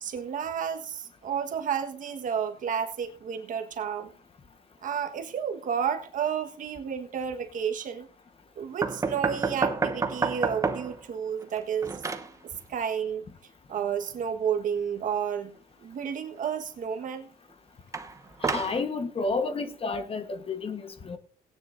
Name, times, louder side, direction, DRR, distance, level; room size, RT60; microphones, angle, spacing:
voice 1, 0.0-4.1 4.8-8.1 8.6-12.0 12.7-13.3 13.7-15.5 15.8-17.3, right 7 dB, 50° right, 6 dB, 1.5 m, -31 dB
sound 1, 8.8-11.0 11.4-12.3 17.9-18.8, right 4 dB, 20° right, 1.0 m, -29 dB
voice 2, 18.4-21.2, left 3 dB, 35° left, 9 dB, 1.3 m, -31 dB
18.0 x 9.6 x 2.6 m, 0.42 s
cardioid pair, 110°, 17 cm